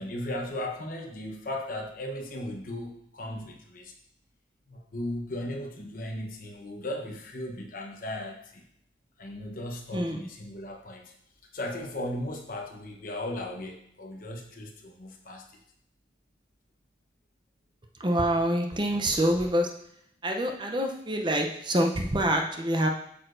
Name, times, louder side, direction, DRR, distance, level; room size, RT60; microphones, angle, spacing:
voice 1, 0.0-3.9 4.7-8.6 9.2-11.1 11.5-15.5, left 1 dB, 50° left, 2 dB, 1.0 m, -36 dB
voice 2, 18.0-19.7 20.2-22.9, right 1 dB, 25° right, 3 dB, 0.6 m, -26 dB
8.6 x 6.6 x 2.6 m, 0.72 s
head